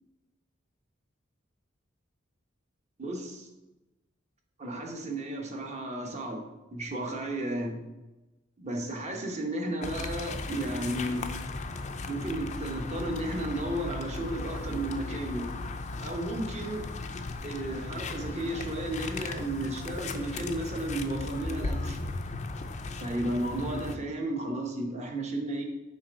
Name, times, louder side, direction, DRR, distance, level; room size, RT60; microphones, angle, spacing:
voice 1, 3.0-3.5 4.6-6.4 6.7-7.8 8.6-11.3 12.1-15.5 16.0-16.8 17.4-22.0 23.0-25.6, right 1 dB, 35° right, 2 dB, 1.0 m, -33 dB
sound 1, 9.8-24.0, left 3 dB, 35° left, 0.4 m, -36 dB
6.9 x 3.3 x 5.1 m, 1.1 s
head